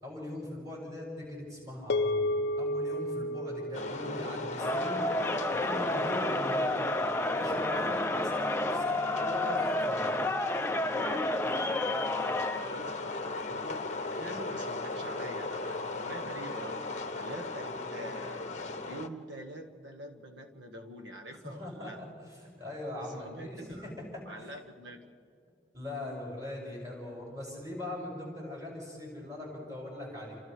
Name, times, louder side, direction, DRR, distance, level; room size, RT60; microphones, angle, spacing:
voice 1, 0.0-6.8 7.3-10.1 21.4-22.1 22.4-24.5 25.7-30.4, left 1 dB, 20° right, -4 dB, 7.0 m, -41 dB
sound 1, 1.9-6.4, left 1 dB, 60° left, 0.5 m, -34 dB
sound 2, 3.7-19.1, left 3 dB, 35° left, 0.9 m, -38 dB
Crowd, 4.6-12.7, left 1 dB, 10° left, 0.5 m, -30 dB
voice 2, 10.9-18.5 18.9-22.0 23.0-25.1, right 1 dB, 65° right, 4 dB, 1.8 m, -45 dB
29.0 x 27.0 x 3.5 m, 2.2 s
head